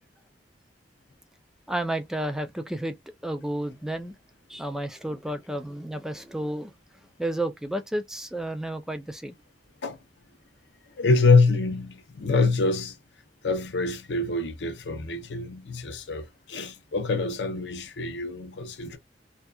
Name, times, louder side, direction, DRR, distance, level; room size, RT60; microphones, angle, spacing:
voice 1, 1.7-3.0 3.2-4.1 4.5-6.7 7.2-9.4, right 1 dB, 5° right, 0.3 m, -31 dB
voice 2, 11.0-13.0 13.4-19.0, left 3 dB, 80° left, 0.6 m, -25 dB
2.7 x 2.2 x 2.3 m
head